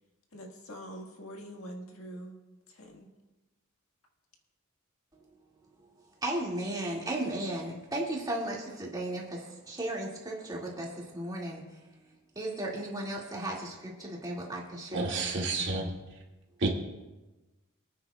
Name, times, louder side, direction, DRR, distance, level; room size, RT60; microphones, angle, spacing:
voice 1, 0.3-2.3 2.7-3.1, equal, 75° left, 1 dB, 1.8 m, -44 dB
voice 2, 6.2-11.8 12.4-15.3 15.5-15.9, right 1 dB, 20° right, -3 dB, 2.2 m, -35 dB
voice 3, 14.9-15.9 16.6-16.7, right 3 dB, 60° right, -2 dB, 2.2 m, -29 dB
25.5 x 9.5 x 2.4 m, 1.1 s
head